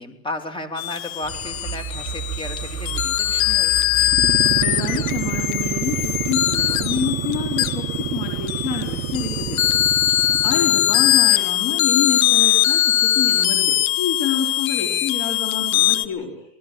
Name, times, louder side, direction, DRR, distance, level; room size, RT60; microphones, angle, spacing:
voice 1, 0.0-3.7 10.2-10.4, left 2 dB, 10° left, 5 dB, 3.1 m, -34 dB
sound 1, 0.8-16.1, left 13 dB, 75° left, 1.6 m, -21 dB
sound 2, 1.2-10.6, right 10 dB, 20° right, 7.9 m, -35 dB
sound 3, 4.0-11.3, right 13 dB, 45° right, 5.1 m, -28 dB
voice 2, 4.6-10.1 10.4-16.4, left 7 dB, 45° left, 2 dB, 4.3 m, -28 dB
25.0 x 19.5 x 7.5 m, 0.82 s
hypercardioid pair, 120°, 41 cm